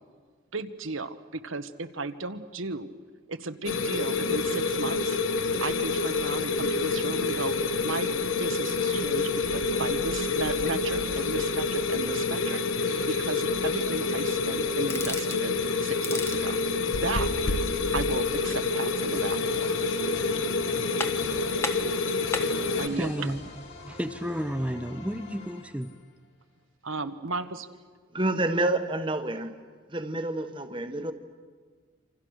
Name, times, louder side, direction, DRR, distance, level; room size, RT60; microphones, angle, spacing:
voice 1, 0.5-2.9 3.3-5.2 5.6-8.1 8.4-16.6 16.9-17.3 17.9-19.8 22.8-23.3 26.8-27.7, right 3 dB, 90° right, 1.4 m, -35 dB
sound 1, 3.6-22.9, left 3 dB, 85° left, 1.1 m, -27 dB
sound 2, 14.9-15.5 15.9-16.5 19.5-20.1 20.5-20.6 21.0-21.4 21.6-22.6, left 2 dB, 15° left, 1.2 m, -34 dB
sound 3, 19.1-26.1, left 2 dB, 60° left, 5.8 m, -43 dB
voice 2, 22.9-23.4 23.9-25.9, equal, 5° right, 0.7 m, -31 dB
voice 3, 28.1-29.6 29.9-31.1, right 2 dB, 25° right, 1.2 m, -28 dB
28.0 x 27.0 x 6.5 m
head